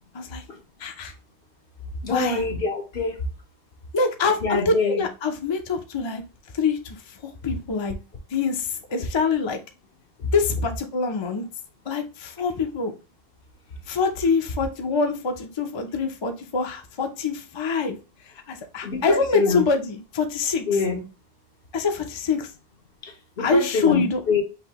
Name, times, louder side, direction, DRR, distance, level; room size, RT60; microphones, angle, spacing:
voice 1, 0.8-1.1 2.1-2.4 3.9-6.2 6.5-7.2 7.4-8.0 8.3-9.6 10.3-11.5 11.9-12.9 13.9-18.0 18.5-20.8 21.7-22.5 23.4-24.2, left 4 dB, 35° left, 0.6 m, -25 dB
voice 2, 2.0-3.1 4.4-5.0 18.8-19.6 20.7-21.0 23.0-23.1 23.4-24.4, left 4 dB, 65° left, 1.2 m, -24 dB
5.9 x 2.7 x 2.9 m
omnidirectional pair, 1.0 m